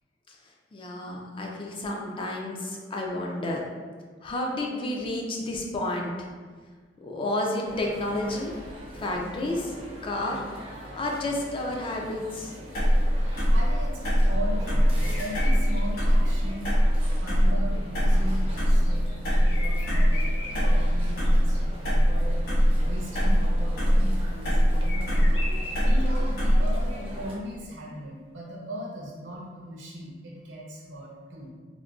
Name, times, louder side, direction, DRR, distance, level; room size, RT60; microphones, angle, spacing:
voice 1, 0.7-3.6 4.2-6.1 7.0-8.6 8.9-9.7 10.0-10.4 10.9-12.5, left 1 dB, 30° left, 0 dB, 0.3 m, -30 dB
sound 1, 7.6-27.4, equal, 30° right, 0.5 m, -43 dB
sound 2, 12.7-26.9, equal, 55° left, 1.3 m, -22 dB
voice 2, 13.5-16.7 17.2-19.1 19.4-25.5 25.8-31.5, equal, 80° right, -3 dB, 0.8 m, -38 dB
sound 3, 14.7-16.3 18.3-21.6 24.8-26.9, left 2 dB, 85° left, 0.5 m, -40 dB
3.6 x 2.1 x 2.3 m, 1.5 s
head